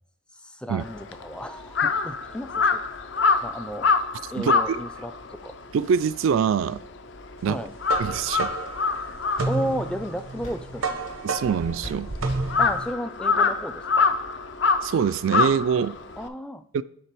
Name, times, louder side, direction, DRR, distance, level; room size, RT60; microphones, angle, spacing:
voice 1, 0.3-2.8 3.4-3.9 4.3-5.5 7.5-7.7 9.5-11.0 12.6-14.2 16.2-16.7, equal, 5° left, 0.4 m, -33 dB
Crow, 0.8-7.4 7.7-16.3, left 4 dB, 60° left, 0.5 m, -26 dB
voice 2, 4.4-4.8 5.7-6.8 7.4-7.6 8.0-8.5 11.2-12.1 14.8-16.0 16.7-16.8, right 7 dB, 75° right, 0.3 m, -24 dB
sound 1, 7.5-12.9, right 3 dB, 90° right, 0.8 m, -31 dB
sound 2, 8.1-10.0 10.4-10.9 11.8-12.3, left 1 dB, 90° left, 3.3 m, -44 dB
9.8 x 3.3 x 4.5 m
head